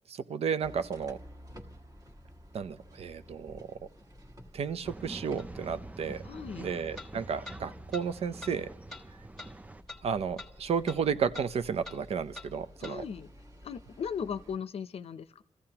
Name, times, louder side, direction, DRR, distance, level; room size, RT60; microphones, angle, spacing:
voice 1, 0.1-1.2 2.5-3.8 4.5-6.2 6.6-8.7 10.0-13.0, right 6 dB, 70° right, 12 dB, 0.6 m, -32 dB
sound 1, 0.6-14.6, equal, 30° right, 1.4 m, -52 dB
Male speech man speaking / Chatter / Rattle, 4.8-9.8, right 2 dB, 15° right, 0.5 m, -46 dB
sound 2, 5.4-5.5 7.0-7.1 7.5-7.6 7.9-8.1 8.4-8.6 8.9-9.0 9.4-9.5 9.9-10.0 10.4-10.5 10.9-11.0 11.3-11.5 11.8-12.0 12.3-12.5 12.8-13.0, left 3 dB, 5° left, 1.4 m, -44 dB
voice 2, 6.2-6.7 12.8-13.3 13.6-15.4, left 7 dB, 65° left, 14 dB, 0.6 m, -37 dB
29.0 x 14.5 x 2.9 m, 0.83 s
wide cardioid pair, 100°, 11 cm